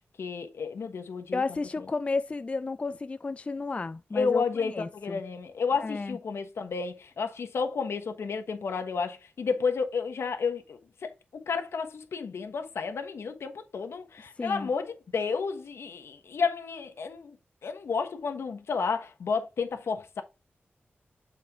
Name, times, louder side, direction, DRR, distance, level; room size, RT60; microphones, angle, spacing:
voice 1, 0.2-1.4 4.1-17.4 17.6-20.2, left 5 dB, 85° left, 1.1 m, -31 dB
voice 2, 1.3-5.2 5.8-6.2 14.4-14.7, left 3 dB, 30° left, 0.4 m, -32 dB
7.5 x 4.2 x 3.5 m
wide cardioid pair, 145°, 4 cm